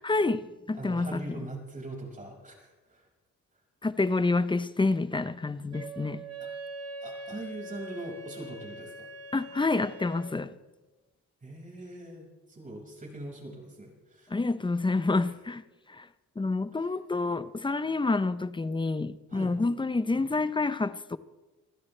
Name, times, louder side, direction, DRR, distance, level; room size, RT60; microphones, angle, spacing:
voice 1, 0.0-1.4 3.8-6.2 9.3-10.5 14.3-15.6 15.9-16.1 16.4-21.2, left 3 dB, 15° left, 0.8 m, -28 dB
voice 2, 0.7-3.1 6.4-6.5 7.0-9.1 11.4-14.3 16.8-16.9 19.3-19.6, right 2 dB, 25° right, 5.8 m, -42 dB
Wind instrument woodwind instrument, 5.7-10.4, right 2 dB, 50° right, 2.5 m, -42 dB
24.5 x 15.5 x 3.4 m
cardioid pair, 90°, 30 cm